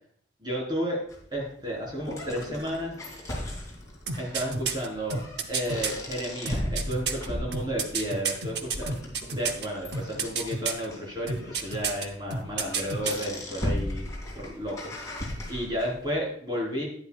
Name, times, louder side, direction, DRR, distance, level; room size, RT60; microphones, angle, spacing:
voice 1, 0.4-1.0 1.3-3.0 4.2-5.2 5.5-14.1 14.3-14.9 15.5-16.9, equal, 25° right, -4 dB, 3.9 m, -32 dB
sound 1, 1.1-16.1, left 1 dB, 15° left, 2.6 m, -37 dB
sound 2, 4.1-5.9 6.4-9.7 9.9-10.8 11.3-12.0 12.3-13.3 13.6-13.7, right 5 dB, 60° right, 0.8 m, -30 dB
11.0 x 10.0 x 2.3 m, 0.62 s
head